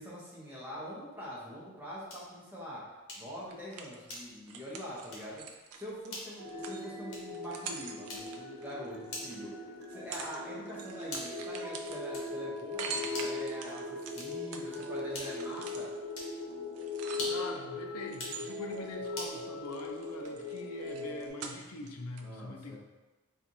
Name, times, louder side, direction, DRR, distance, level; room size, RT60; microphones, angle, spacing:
voice 1, 0.0-2.8 3.2-5.4 5.7-9.6 9.9-15.9 22.2-22.8, equal, 10° right, -7 dB, 0.8 m, -44 dB
sound 1, 2.1-2.4 3.1-3.4 4.1-4.5 5.1-5.4 6.1-6.4 7.1-7.4 8.1-8.5 9.1-9.5 10.1-10.5 11.1-11.5 12.1-12.5 13.1-13.5 14.1-14.5 15.1-15.5 16.1-16.4 17.1-17.5 18.1-18.4 19.1-19.4, left 1 dB, 60° left, 1.0 m, -43 dB
sound 2, 3.5-9.3 9.8-10.4 10.7-17.6 18.1-19.4 19.6-21.9 22.2-22.3, right 5 dB, 70° right, 0.4 m, -45 dB
sound 3, 6.4-21.3, left 2 dB, 90° right, 1.0 m, -40 dB
voice 2, 17.3-22.8, left 2 dB, 80° left, 3 dB, 0.5 m, -43 dB
4.4 x 2.4 x 2.6 m, 1.2 s
head